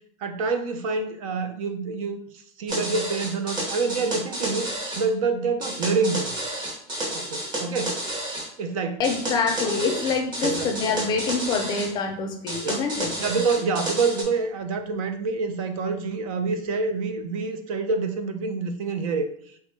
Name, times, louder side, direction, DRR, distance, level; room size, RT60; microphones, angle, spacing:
voice 1, 0.2-2.2 2.6-6.3 7.1-8.0 8.6-9.0 10.4-10.7 12.6-12.8 13.2-19.3, right 4 dB, 90° right, 8 dB, 0.5 m, -27 dB
sound 1, 2.7-5.0 5.6-8.5 9.0-11.9 12.5-14.2, right 1 dB, 25° right, 0.7 m, -31 dB
voice 2, 9.0-13.1, left 4 dB, 25° left, 4 dB, 0.4 m, -26 dB
3.3 x 2.1 x 3.1 m, 0.66 s
supercardioid pair, 165°, 17 cm